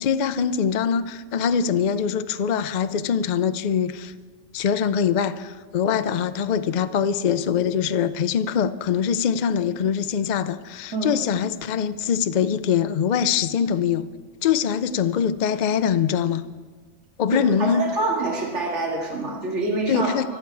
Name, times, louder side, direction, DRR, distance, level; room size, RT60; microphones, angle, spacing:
voice 1, 0.0-4.1 4.5-14.1 14.4-16.4 17.2-17.9 19.9-20.3, left 7 dB, 75° left, 0.4 m, -23 dB
voice 2, 17.3-20.2, right 3 dB, 55° right, 2.4 m, -26 dB
24.5 x 8.9 x 4.7 m
omnidirectional pair, 1.4 m